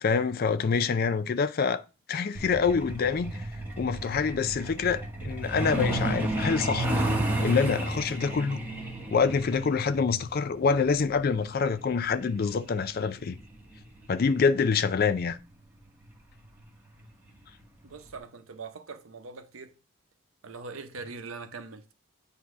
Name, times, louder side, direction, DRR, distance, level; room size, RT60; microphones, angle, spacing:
voice 1, 0.0-1.8 2.1-3.4 3.8-6.9 7.4-8.6 9.1-13.4 14.1-15.4, left 5 dB, 45° left, 0.4 m, -26 dB
Truck, 2.3-14.6 15.9-16.0 16.4-16.6 17.0-17.3 17.6-17.7 18.2-18.3, right 1 dB, 10° right, 1.1 m, -32 dB
voice 2, 17.8-19.7 20.4-21.9, right 4 dB, 70° right, 0.8 m, -42 dB
8.2 x 2.8 x 4.8 m
head